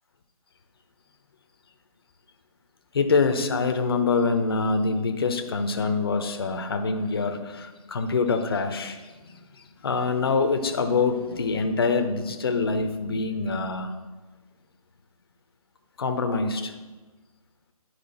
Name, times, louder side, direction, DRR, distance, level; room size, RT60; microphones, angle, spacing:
voice 1, 2.9-13.9 16.0-16.7, left 4 dB, 40° left, 7 dB, 0.7 m, -25 dB
10.5 x 4.8 x 4.1 m, 1.2 s
figure-of-eight pair, 160°, 19 cm